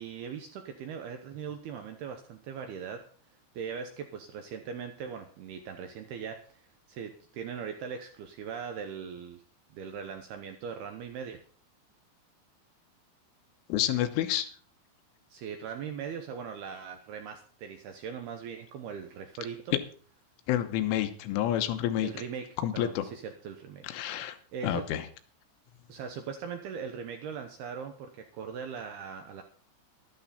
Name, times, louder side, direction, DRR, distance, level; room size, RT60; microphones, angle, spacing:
voice 1, 0.0-3.0 3.5-6.6 6.9-9.4 9.7-11.4 15.3-19.8 22.0-23.8 24.1-24.9 25.9-29.4, right 7 dB, 75° right, 6 dB, 2.4 m, -40 dB
voice 2, 13.7-14.5 20.5-22.1 22.6-23.1 23.8-24.4 24.6-25.0, left 11 dB, 90° left, 8 dB, 3.5 m, -29 dB
13.5 x 12.0 x 4.2 m, 0.42 s
omnidirectional pair, 5.7 m